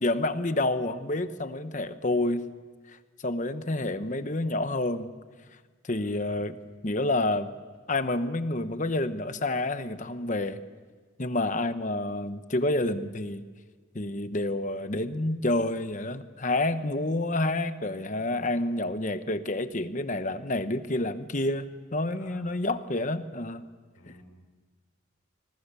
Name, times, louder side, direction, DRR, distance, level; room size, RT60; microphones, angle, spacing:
voice 1, 0.0-2.5 3.2-5.1 5.8-6.6 6.8-7.5 7.9-10.6 11.2-13.4 13.9-23.7, left 2 dB, 35° left, 11 dB, 1.0 m, -29 dB
voice 2, 22.1-22.5 23.9-24.2, left 1 dB, 70° left, 3 dB, 4.7 m, -54 dB
25.0 x 22.5 x 7.0 m, 1.4 s
head